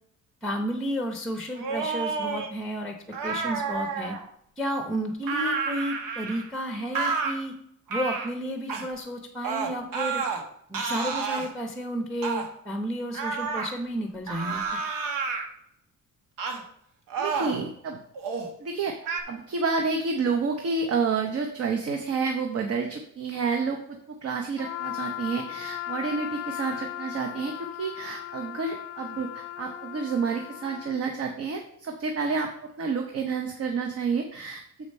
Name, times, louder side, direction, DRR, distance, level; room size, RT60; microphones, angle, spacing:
voice 1, 0.4-3.0 3.2-4.2 4.6-7.5 7.9-10.2 10.7-14.6, equal, ahead, 3 dB, 0.7 m, -32 dB
sound 1, 1.6-2.5 3.1-4.2 5.2-6.5 6.9-7.3 7.9-8.3 8.7-8.9 9.4-10.4 10.7-11.5 12.2-12.5 13.1-13.7 14.3-15.4 16.4-16.6 17.1-17.6 18.1-18.5 19.0-19.2, right 5 dB, 85° right, 1.3 m, -30 dB
voice 2, 17.2-18.0 18.6-18.9 19.3-27.5 27.8-32.5 32.8-34.6, right 4 dB, 50° right, 3 dB, 0.8 m, -29 dB
Trumpet, 24.6-31.0, left 13 dB, 45° left, 0.5 m, -37 dB
7.2 x 4.9 x 5.4 m, 0.73 s
cardioid pair, 160°, 32 cm